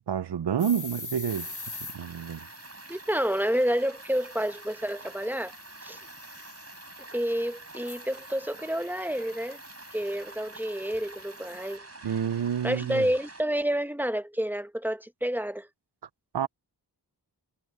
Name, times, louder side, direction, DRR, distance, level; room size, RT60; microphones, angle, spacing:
voice 1, 0.1-1.5 1.9-2.5 12.0-13.1 16.3-16.5, right 8 dB, 70° right, 0.7 m, -29 dB
sound 1, 0.6-11.8, left 3 dB, 45° left, 3.0 m, -46 dB
sound 2, 1.3-13.4, right 2 dB, 35° right, 4.5 m, -47 dB
voice 2, 2.9-5.5 5.8-6.0 7.1-9.6 9.9-11.9 12.6-15.7, equal, 5° right, 1.0 m, -29 dB
wide cardioid pair, 80°, 42 cm